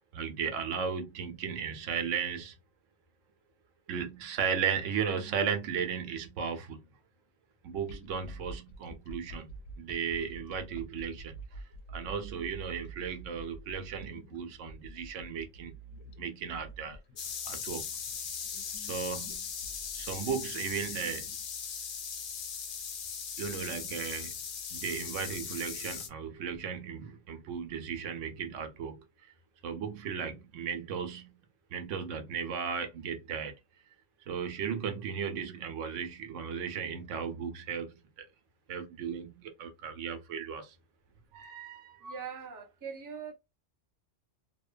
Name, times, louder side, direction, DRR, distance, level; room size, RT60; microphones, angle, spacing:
voice 1, 0.1-2.5 3.9-6.8 7.6-11.6 11.9-15.7 16.2-17.0 17.5-17.9 18.8-19.5 19.9-21.4 23.4-24.4 24.7-29.3 29.6-31.3 31.7-33.6 34.3-38.3 38.7-40.7 41.3-42.2, right 7 dB, 80° right, 0.9 m, -36 dB
sound 1, 7.8-21.0, right 2 dB, 80° left, 0.9 m, -48 dB
sound 2, 17.2-26.1, left 7 dB, 60° left, 0.6 m, -39 dB
voice 2, 42.0-43.3, right 6 dB, 30° right, 0.4 m, -41 dB
2.7 x 2.1 x 2.3 m
omnidirectional pair, 1.3 m